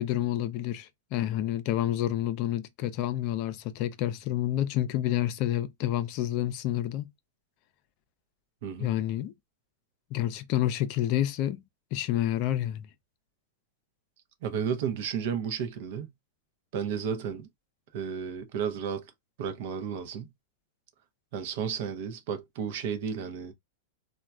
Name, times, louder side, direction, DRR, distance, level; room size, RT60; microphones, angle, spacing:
voice 1, 0.0-7.1 8.8-9.3 10.1-11.6 11.9-12.9, left 12 dB, 50° left, 0.4 m, -29 dB
voice 2, 8.6-8.9 14.4-16.1 16.7-17.5 17.9-19.1 19.4-20.3 21.3-23.5, right 7 dB, 60° right, 0.6 m, -32 dB
3.0 x 2.2 x 2.3 m
hypercardioid pair, 105°, 0 cm